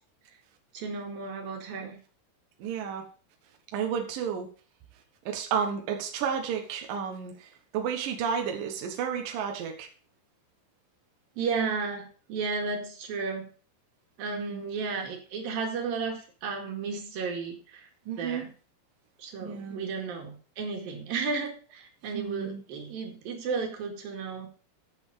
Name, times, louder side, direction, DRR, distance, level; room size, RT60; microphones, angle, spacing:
voice 1, 0.7-2.0 11.4-13.5 14.2-17.9 18.2-18.5 19.2-24.5, right 4 dB, 55° right, 2 dB, 3.3 m, -33 dB
voice 2, 2.6-3.1 3.7-4.5 5.3-9.9 14.3-14.7 18.1-18.5 19.4-19.8 22.1-22.6, right 7 dB, 75° right, 3 dB, 2.0 m, -32 dB
13.0 x 6.8 x 5.0 m, 0.39 s
omnidirectional pair, 6.0 m